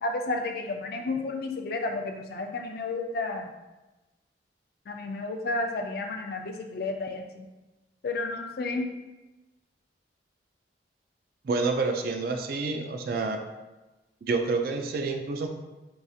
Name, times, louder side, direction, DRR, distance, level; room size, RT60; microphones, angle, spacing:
voice 1, 0.0-3.5 4.9-7.5 8.0-8.9, left 3 dB, 55° left, 3 dB, 0.4 m, -32 dB
voice 2, 11.4-13.4 14.3-15.5, right 3 dB, 50° right, 4 dB, 0.3 m, -28 dB
4.6 x 2.3 x 2.7 m, 1.1 s
head